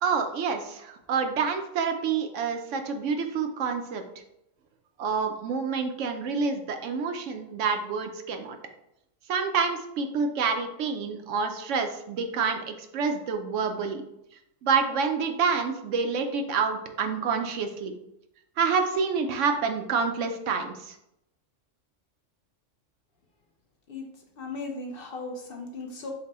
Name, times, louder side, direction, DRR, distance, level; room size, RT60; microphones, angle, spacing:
voice 1, 0.0-4.0 5.0-8.6 9.3-14.0 14.6-17.9 18.6-21.0, right 5 dB, 75° right, 6 dB, 0.9 m, -28 dB
voice 2, 24.4-26.1, left 3 dB, 55° left, 2 dB, 0.8 m, -37 dB
5.9 x 2.2 x 4.1 m, 0.82 s
omnidirectional pair, 1.3 m